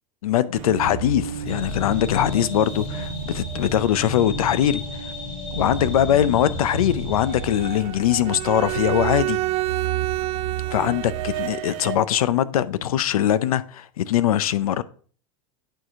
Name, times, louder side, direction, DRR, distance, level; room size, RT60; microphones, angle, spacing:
voice 1, 0.2-4.8 5.5-9.4 10.7-14.8, left 11 dB, 90° left, 0.6 m, -22 dB
sound 1, 0.5-12.0, right 13 dB, 60° right, 0.8 m, -33 dB
sound 2, 1.5-7.8, left 6 dB, 35° left, 2.7 m, -33 dB
Bowed string instrument, 8.2-11.8, right 17 dB, 35° right, 0.5 m, -28 dB
9.0 x 4.6 x 3.6 m
hypercardioid pair, 115°, 18 cm